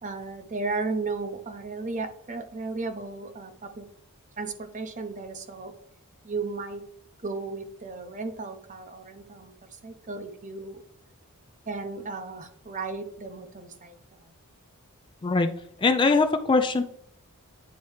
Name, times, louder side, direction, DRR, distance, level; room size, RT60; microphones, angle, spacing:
voice 1, 0.0-3.9 4.4-5.7 6.2-6.8 7.2-10.8 11.7-14.3, right 3 dB, 35° right, 8 dB, 0.8 m, -35 dB
voice 2, 15.8-16.8, left 3 dB, 20° left, 8 dB, 0.3 m, -21 dB
9.3 x 4.1 x 3.2 m, 0.71 s
head